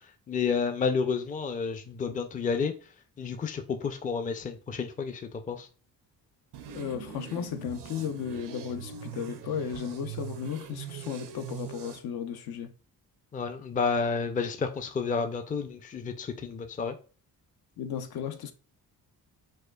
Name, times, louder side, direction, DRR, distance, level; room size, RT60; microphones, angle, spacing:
voice 1, 0.3-2.7 3.2-5.2 5.5-5.7 13.3-17.0, left 5 dB, 20° left, 0.4 m, -30 dB
sound 1, 6.5-12.0, right 9 dB, 85° right, 0.6 m, -42 dB
voice 2, 6.7-12.7 17.8-18.5, left 8 dB, 70° left, 0.6 m, -35 dB
4.3 x 2.4 x 2.2 m
cardioid pair, 75°, 39 cm